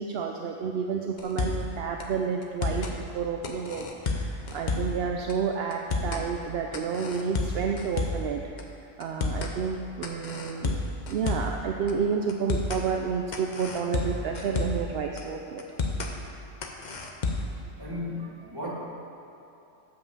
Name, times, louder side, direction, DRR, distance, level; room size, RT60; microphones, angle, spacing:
voice 1, 0.0-8.4 8.8-15.6, right 6 dB, 65° right, 2 dB, 0.6 m, -30 dB
sound 1, 1.2-1.7 2.0-2.1 2.4-2.9 3.4-5.0 5.3-5.4 5.7-6.3 6.7-8.3 8.6-8.7 9.0-9.5 10.0-11.6 11.9-12.0 12.3-12.8 13.3-14.9 15.2-15.3 15.6-16.1 16.6-17.6, left 3 dB, 45° left, 0.7 m, -30 dB
voice 2, 17.8-18.7, left 2 dB, 20° right, -6 dB, 1.7 m, -35 dB
7.6 x 5.7 x 7.1 m, 2.9 s
omnidirectional pair, 1.4 m